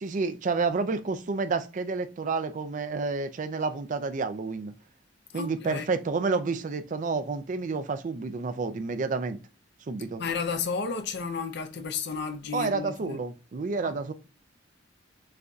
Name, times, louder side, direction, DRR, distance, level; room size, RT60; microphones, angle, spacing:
voice 1, 0.0-4.7 5.3-9.4 9.9-10.2 12.5-14.1, right 4 dB, 40° right, 0.4 m, -30 dB
voice 2, 5.3-5.9 10.2-13.2 13.8-14.0, left 5 dB, 60° left, 0.5 m, -32 dB
6.5 x 2.6 x 2.3 m
head